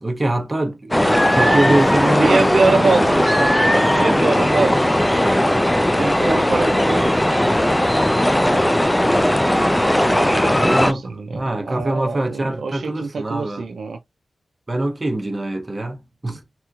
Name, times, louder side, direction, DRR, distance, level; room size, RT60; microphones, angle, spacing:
voice 1, 0.0-3.0 10.6-13.6 14.7-16.5, right 1 dB, 25° right, 0.8 m, -23 dB
sound 1, 0.9-10.9, left 1 dB, 10° left, 0.3 m, -17 dB
voice 2, 1.3-1.8 2.2-4.9 6.0-7.1 10.1-14.0, right 3 dB, 75° right, 0.4 m, -24 dB
3.4 x 2.9 x 2.3 m
wide cardioid pair, 115°, 0 cm